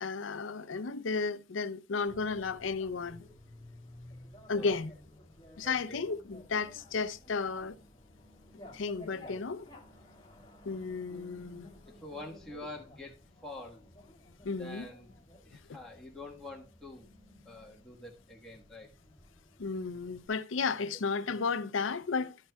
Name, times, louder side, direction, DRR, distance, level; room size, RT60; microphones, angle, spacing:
voice 1, 0.0-3.3 4.5-4.9 5.6-7.8 8.7-9.7 10.7-11.7 14.4-14.9 15.7-15.8 19.6-22.4, left 4 dB, 80° left, 0.6 m, -33 dB
Bicycle, 2.1-20.3, left 1 dB, 20° left, 2.8 m, -54 dB
voice 2, 5.6-6.0 12.0-13.2 13.4-13.8 14.6-15.1 15.4-17.1 17.4-18.9, left 2 dB, 5° left, 1.4 m, -46 dB
11.5 x 8.6 x 2.3 m
head